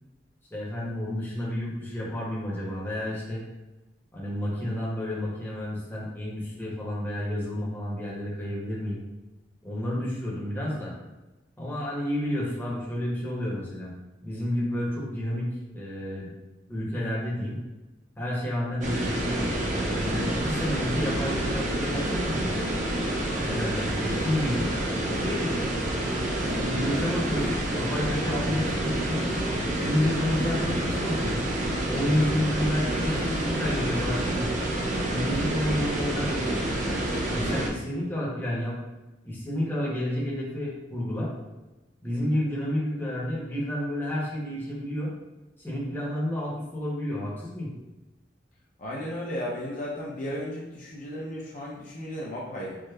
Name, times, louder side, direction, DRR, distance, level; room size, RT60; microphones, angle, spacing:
voice 1, 0.5-3.4 4.1-9.0 9.6-10.9 11.6-13.9 14.2-15.5 15.7-16.3 16.7-17.6 18.2-19.5 19.9-22.6 23.4-24.7 25.2-25.6 26.4-29.2 29.7-31.4 31.9-34.6 35.1-36.7 37.3-38.8 39.2-41.3 42.0-45.1 45.6-47.7, left 1 dB, 10° left, -6 dB, 0.7 m, -30 dB
sound 1, 18.8-37.7, right 1 dB, 45° right, 0.5 m, -28 dB
voice 2, 48.8-52.8, equal, 45° left, -4 dB, 0.5 m, -34 dB
4.7 x 2.0 x 2.2 m, 1.1 s
head